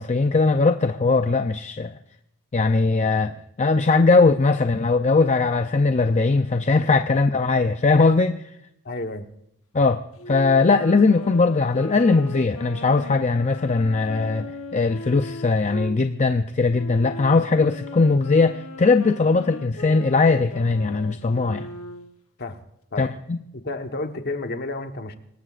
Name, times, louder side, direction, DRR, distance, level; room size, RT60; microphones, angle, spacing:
voice 1, 0.0-1.9 2.5-8.4 9.7-21.7 23.0-23.4, left 3 dB, 30° left, 8 dB, 0.5 m, -20 dB
voice 2, 8.8-9.3 22.4-22.6 22.9-23.1 23.5-25.1, left 2 dB, 50° left, 6 dB, 1.2 m, -31 dB
Wind instrument woodwind instrument, 10.2-16.0 16.7-22.1, left 2 dB, 70° left, 1.0 m, -38 dB
25.5 x 18.5 x 2.5 m, 0.78 s
head